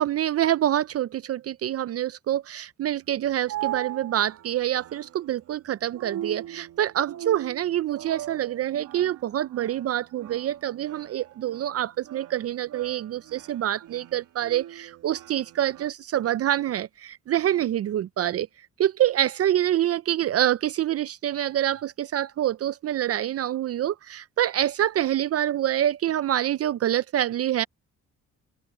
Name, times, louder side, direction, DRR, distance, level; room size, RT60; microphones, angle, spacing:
voice 1, 0.0-18.5 18.8-27.6, right 12 dB, 50° right, 0.5 m, -26 dB
sound 1, 3.0-15.9, right 13 dB, 85° right, 2.2 m, -40 dB
open air
cardioid pair, 90°, 30 cm